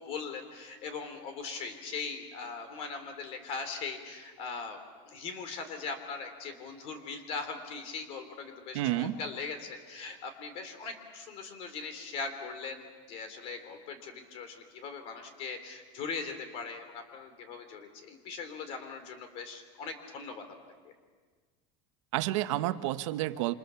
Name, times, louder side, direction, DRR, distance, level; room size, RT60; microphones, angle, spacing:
voice 1, 0.0-4.8 5.1-20.4 20.8-20.9, left 4 dB, 40° left, 8 dB, 3.6 m, -40 dB
voice 2, 8.7-9.2 22.1-23.5, right 15 dB, 80° right, 11 dB, 1.2 m, -30 dB
28.5 x 26.5 x 7.1 m, 1.5 s
cardioid pair, 180°, 16 cm